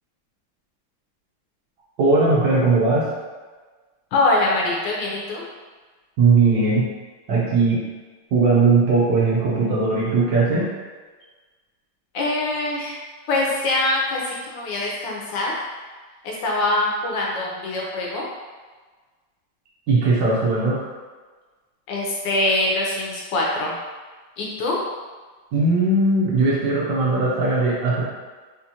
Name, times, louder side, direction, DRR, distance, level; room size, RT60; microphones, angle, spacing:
voice 1, 2.0-3.1 6.2-6.9 7.3-7.8 8.3-10.7 19.9-20.8 25.5-28.0, right 3 dB, 70° right, -6 dB, 1.4 m, -19 dB
voice 2, 4.1-5.4 12.1-13.0 13.3-15.5 16.2-18.3 21.9-23.8 24.4-24.8, left 2 dB, 75° left, -2 dB, 1.2 m, -23 dB
4.3 x 2.4 x 2.7 m, 1.4 s
omnidirectional pair, 2.2 m